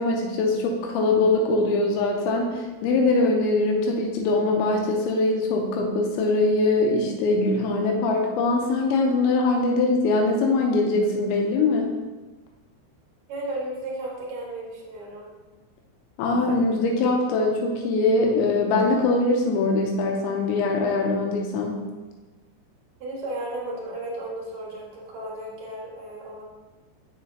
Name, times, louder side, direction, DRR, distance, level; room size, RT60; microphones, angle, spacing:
voice 1, 0.0-11.9 16.2-21.8, left 3 dB, 85° left, 0 dB, 2.9 m, -22 dB
voice 2, 13.3-15.3 23.0-26.4, right 1 dB, 75° right, -4 dB, 1.6 m, -34 dB
7.2 x 6.7 x 2.7 m, 1.2 s
omnidirectional pair, 5.4 m